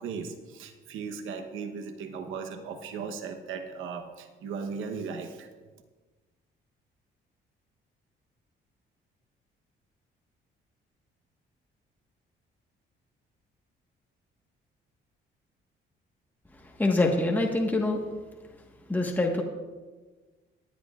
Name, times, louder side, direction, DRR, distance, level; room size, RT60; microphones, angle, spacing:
voice 1, 0.0-5.5, right 5 dB, 85° right, 6 dB, 1.0 m, -37 dB
voice 2, 16.5-18.0 18.9-19.4, left 2 dB, 10° left, 0 dB, 1.4 m, -25 dB
18.5 x 10.5 x 2.4 m, 1.3 s
cardioid pair, 90°, 20 cm